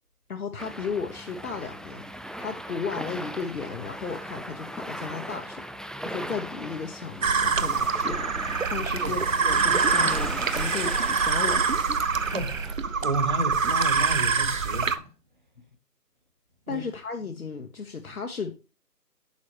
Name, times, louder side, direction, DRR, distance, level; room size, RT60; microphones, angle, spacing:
voice 1, 0.3-5.6 6.0-8.3 8.7-12.1 16.7-18.5, left 5 dB, 60° left, 1.0 m, -35 dB
sound 1, 0.6-12.7, equal, ahead, 0.3 m, -38 dB
sound 2, 7.2-15.0, right 5 dB, 55° right, 0.6 m, -25 dB
voice 2, 12.2-15.1 16.7-16.8, right 1 dB, 30° right, 1.0 m, -32 dB
8.3 x 5.6 x 2.9 m
hypercardioid pair, 175°, 49 cm